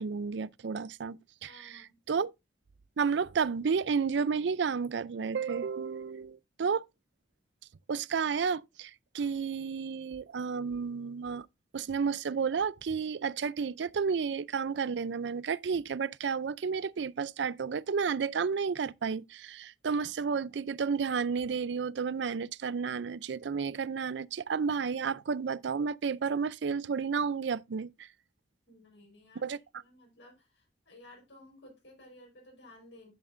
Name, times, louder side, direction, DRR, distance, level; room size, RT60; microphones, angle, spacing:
voice 1, 0.0-2.3 3.0-6.9 7.9-11.5 11.7-28.1 29.4-29.6, right 5 dB, 80° right, 0.4 m, -32 dB
voice 2, 1.5-2.0 28.7-33.1, left 1 dB, 90° left, 4.8 m, -56 dB
11.0 x 7.9 x 2.6 m
head